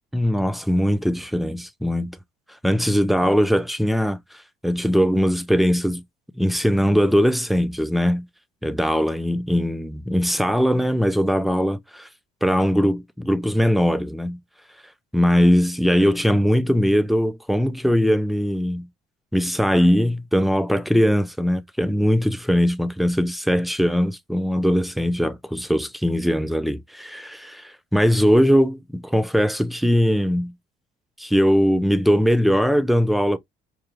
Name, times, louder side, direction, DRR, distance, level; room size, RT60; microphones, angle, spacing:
voice 1, 0.1-2.2 2.6-4.2 4.6-6.0 6.4-8.3 8.6-12.1 12.4-14.4 15.1-18.9 19.3-30.5 31.2-33.4, equal, ahead, 0.4 m, -20 dB
4.7 x 2.3 x 3.0 m
cardioid pair, 110°, 17 cm